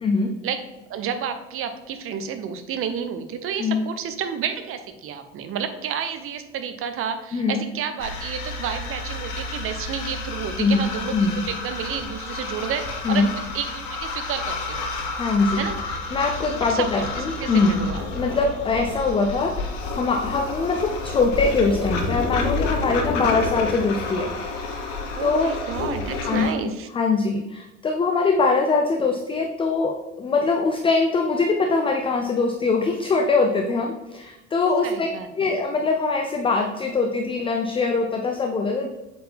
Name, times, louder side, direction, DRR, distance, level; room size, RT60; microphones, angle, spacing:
voice 1, 0.0-0.3 3.6-3.8 7.3-7.6 10.6-10.9 11.1-11.4 13.0-13.3 15.1-15.7 16.1-17.8 18.2-24.3 25.2-25.5 26.2-26.5 26.9-35.1 35.4-38.9, left 4 dB, 15° left, 3 dB, 0.5 m, -22 dB
voice 2, 0.9-14.8 15.6-15.8 16.7-18.1 25.1-26.9 34.8-35.6, right 7 dB, 35° right, 9 dB, 0.8 m, -30 dB
sound 1, 8.0-26.5, left 3 dB, 55° left, 1.2 m, -30 dB
7.6 x 4.3 x 3.4 m, 1.0 s
figure-of-eight pair, 65°, 37 cm